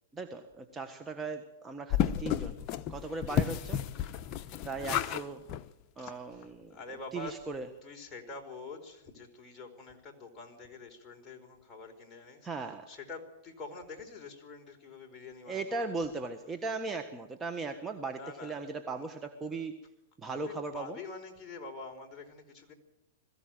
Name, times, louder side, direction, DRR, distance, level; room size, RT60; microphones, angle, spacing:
voice 1, 0.1-2.6 2.9-3.8 4.6-5.4 6.0-6.8 7.1-7.7 12.4-12.9 15.5-19.8 20.2-21.0, right 3 dB, 15° right, 6 dB, 1.5 m, -38 dB
sound 1, 1.9-5.2 5.5-5.6 6.1-6.2 6.4-6.5, left 10 dB, 35° left, 1.0 m, -32 dB
voice 2, 6.0-7.3 7.8-12.5 12.9-15.9 17.7-19.1 19.5-19.7 20.2-22.7, left 4 dB, 20° left, 1 dB, 4.7 m, -46 dB
22.0 x 15.5 x 9.1 m, 0.89 s
hypercardioid pair, 130°, 0 cm